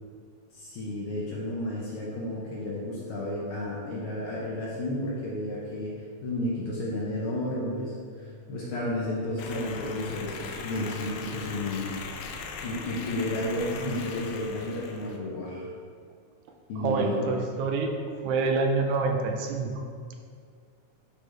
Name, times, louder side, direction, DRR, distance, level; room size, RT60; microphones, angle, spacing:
voice 1, 0.5-6.0 6.2-11.9 12.6-15.7 16.7-17.2, left 1 dB, 65° left, -5 dB, 1.5 m, -32 dB
sound 1, 9.4-15.2, left 4 dB, 85° left, 1.3 m, -39 dB
voice 2, 16.8-17.9 18.2-19.8, right 3 dB, 80° right, 3 dB, 2.0 m, -27 dB
11.0 x 4.1 x 3.3 m, 2.1 s
omnidirectional pair, 3.4 m